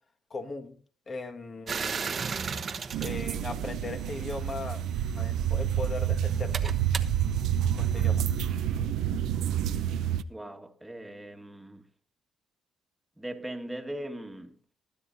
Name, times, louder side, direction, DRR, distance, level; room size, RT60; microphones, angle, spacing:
voice 1, 0.3-0.8 1.1-2.4 3.0-4.8 5.1-6.7 7.7-8.2, left 3 dB, 40° left, 1.8 m, -38 dB
sound 1, 1.7-4.3 5.2-8.5, right 5 dB, 45° right, 1.1 m, -37 dB
sound 2, 2.9-10.2, right 10 dB, 80° right, 0.7 m, -28 dB
voice 2, 10.3-11.9 13.2-14.5, right 1 dB, 10° right, 1.7 m, -39 dB
20.0 x 10.0 x 2.7 m
cardioid pair, 80°, 0 cm